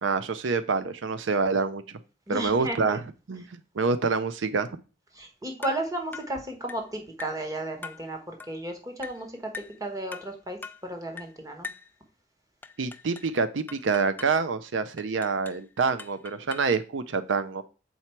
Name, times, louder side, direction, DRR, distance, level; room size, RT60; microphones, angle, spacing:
voice 1, 0.0-1.8 2.3-3.0 3.3-4.7 12.8-17.6, right 4 dB, 90° right, 12 dB, 0.5 m, -27 dB
voice 2, 2.3-3.0 5.1-11.7, right 1 dB, 20° right, 3 dB, 1.2 m, -34 dB
sound 1, 5.6-5.9 6.1-6.4 6.7-6.9 7.2-7.4 7.8-8.1 8.4-8.6 9.0-9.2 9.5-9.8 10.1-10.3 10.6-10.8 11.2-11.4 11.6-11.9 12.6-13.3 13.7-14.4 15.0-15.6 16.0-16.8, left 5 dB, 10° left, 0.3 m, -42 dB
7.0 x 4.4 x 4.5 m, 0.33 s
head